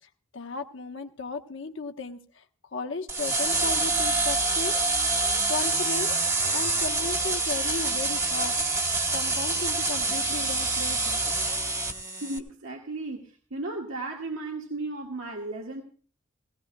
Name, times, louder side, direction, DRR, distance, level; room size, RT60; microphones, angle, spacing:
voice 1, 0.3-2.4 2.7-4.8 5.5-6.2 6.5-8.5 9.1-11.2, left 3 dB, 65° left, 5 dB, 1.1 m, -35 dB
sound 1, 3.1-12.4, right 2 dB, 15° right, 1.3 m, -26 dB
voice 2, 12.1-15.8, right 2 dB, 85° right, 0 dB, 1.8 m, -35 dB
18.0 x 17.0 x 2.3 m, 0.41 s
head